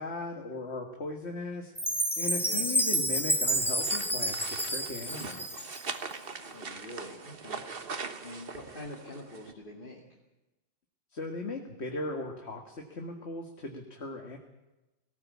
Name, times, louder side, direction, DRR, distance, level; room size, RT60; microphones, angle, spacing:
voice 1, 0.0-1.7 2.2-5.6 11.1-14.4, left 2 dB, 60° left, 3 dB, 2.1 m, -38 dB
Chime, 1.8-6.0, equal, ahead, 1.7 m, -29 dB
sound 1, 3.6-9.5, right 4 dB, 50° right, 1.5 m, -41 dB
voice 2, 6.5-7.6 8.2-10.0, left 1 dB, 45° left, -2 dB, 2.6 m, -45 dB
18.5 x 17.5 x 8.5 m, 1.0 s
omnidirectional pair, 1.2 m